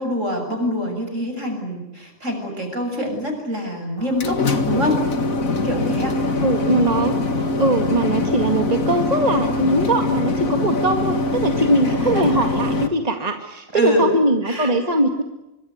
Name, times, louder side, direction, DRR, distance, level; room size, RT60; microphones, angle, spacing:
voice 1, 0.0-5.0 5.6-6.2 11.8-12.2 13.7-14.2 14.4-15.0, equal, 65° right, 5 dB, 7.5 m, -25 dB
sound 1, 4.0-12.9, left 2 dB, 85° left, 2.4 m, -23 dB
voice 2, 6.4-7.1 7.6-11.2 11.4-15.2, right 1 dB, 30° right, 5 dB, 2.1 m, -21 dB
26.0 x 24.5 x 9.5 m, 0.97 s
omnidirectional pair, 1.4 m